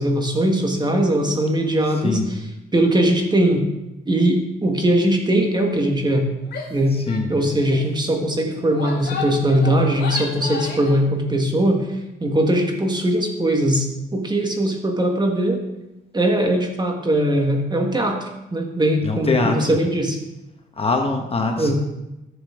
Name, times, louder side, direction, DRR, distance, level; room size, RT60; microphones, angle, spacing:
voice 1, 0.0-2.2 2.7-3.7 4.0-6.2 6.7-7.0 7.3-11.9 12.2-15.6 16.1-20.2 21.6-21.7, right 1 dB, 20° right, 2 dB, 1.6 m, -20 dB
Female speech woman speaking / Yell, 6.5-6.8 7.1-7.2 7.5-7.8 8.5-11.0, left 5 dB, 55° left, 3.0 m, -33 dB
voice 2, 6.9-7.3 19.0-19.7 20.8-21.7, left 3 dB, 30° left, 4 dB, 1.1 m, -22 dB
11.0 x 6.8 x 3.7 m, 0.93 s
cardioid pair, 90°, 20 cm